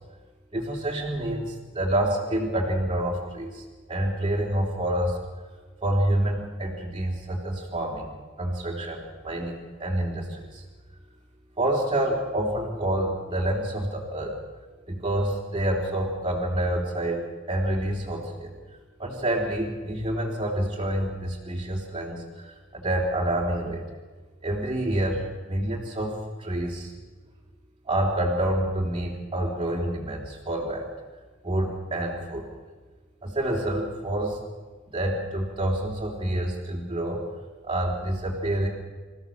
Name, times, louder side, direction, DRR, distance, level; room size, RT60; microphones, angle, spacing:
voice 1, 0.5-5.2 5.8-8.1 8.4-10.6 11.6-14.4 14.9-18.5 19.0-23.8 24.4-26.9 27.9-30.9 31.4-32.4 33.2-34.4 34.9-37.2 37.6-38.7, right 1 dB, 25° right, -3 dB, 3.6 m, -28 dB
26.5 x 15.5 x 7.4 m, 1.4 s
head